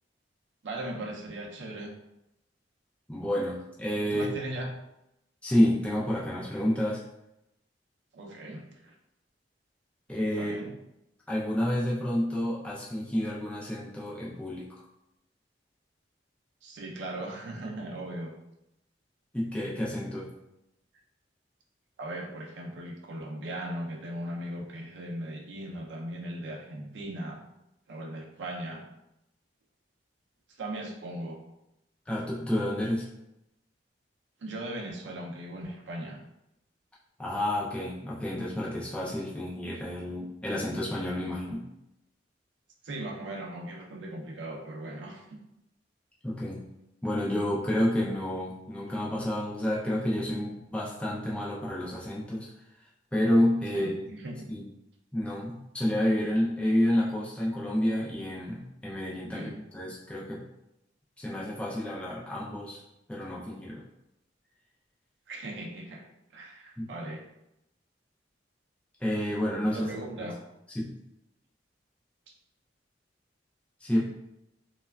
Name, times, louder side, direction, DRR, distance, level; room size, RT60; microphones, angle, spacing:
voice 1, 0.6-1.9 4.1-4.7 8.1-8.9 10.4-10.7 16.6-18.3 22.0-27.4 27.9-28.8 30.6-31.4 34.4-36.2 42.8-45.3 53.7-54.4 59.3-59.6 65.3-66.0 66.3-67.3 69.7-70.4, right 1 dB, 75° right, 0 dB, 0.5 m, -38 dB
voice 2, 3.1-4.3 5.4-7.0 10.1-10.6 11.3-14.8 19.3-20.3 32.1-33.1 37.2-41.6 46.2-46.7 47.0-52.5 53.1-54.1 54.5-54.7 55.1-60.4 61.2-62.8 63.1-63.8 66.8-66.9 69.0-69.9 70.2-70.3 70.7-70.9 73.8-74.0, left 1 dB, 5° left, -6 dB, 0.4 m, -29 dB
3.1 x 2.2 x 2.2 m, 0.87 s
head